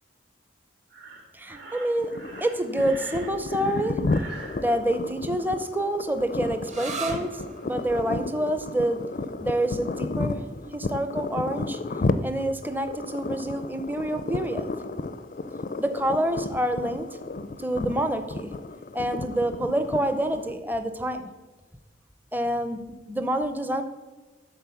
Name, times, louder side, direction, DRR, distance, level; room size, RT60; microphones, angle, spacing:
Breathing, 0.9-4.6, right 3 dB, 65° right, 1.8 m, -43 dB
voice 1, 1.3-2.1 2.4-4.0 4.6-9.0 9.4-10.5 10.7-11.8 12.2-14.7 15.8-17.1 17.6-18.5 18.9-21.3 22.3-23.8, right 1 dB, 10° right, 9 dB, 0.5 m, -27 dB
sound 1, 2.0-20.5, left 3 dB, 45° left, 0.4 m, -32 dB
sound 2, 6.6-14.0, right 4 dB, 35° right, 0.9 m, -42 dB
12.0 x 4.2 x 7.0 m, 1.2 s
head